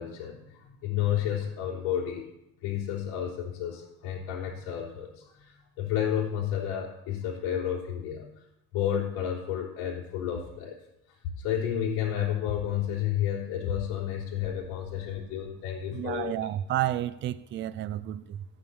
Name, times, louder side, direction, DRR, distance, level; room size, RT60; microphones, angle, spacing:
voice 1, 0.0-2.3 2.6-8.3 8.7-10.8 11.4-16.3, left 10 dB, 75° left, 3.8 m, -31 dB
voice 2, 15.9-18.5, right 13 dB, 30° right, 0.5 m, -31 dB
14.5 x 9.1 x 7.0 m
cardioid pair, 160°, 39 cm